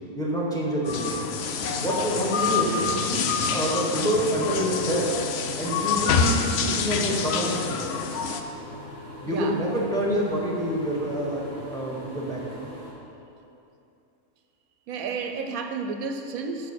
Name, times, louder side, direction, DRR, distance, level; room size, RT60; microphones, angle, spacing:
voice 1, 0.1-1.2 1.8-5.2 5.6-7.8 9.2-12.4, right 1 dB, 5° left, -5 dB, 1.3 m, -27 dB
sound 1, 0.8-8.4, left 6 dB, 65° left, 0.6 m, -27 dB
sound 2, 1.0-12.9, left 1 dB, 35° left, 1.8 m, -42 dB
voice 2, 9.3-9.6 14.9-16.7, right 5 dB, 75° right, 5 dB, 1.0 m, -31 dB
6.4 x 5.5 x 6.9 m, 2.7 s
omnidirectional pair, 1.5 m